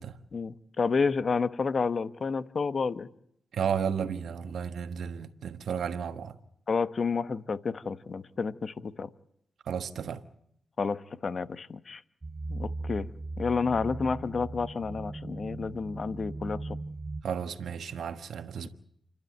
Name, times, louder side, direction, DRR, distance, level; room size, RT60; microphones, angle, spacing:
voice 1, 0.3-3.1 6.7-9.1 10.8-12.0 12.5-13.1 13.4-16.6, left 5 dB, 55° left, 1.1 m, -30 dB
voice 2, 3.5-6.3 9.7-10.2 17.2-18.7, right 7 dB, 80° right, 1.3 m, -33 dB
sound 1, 12.2-17.2, right 2 dB, 35° right, 1.1 m, -38 dB
29.5 x 12.5 x 9.2 m
cardioid pair, 60°, 0 cm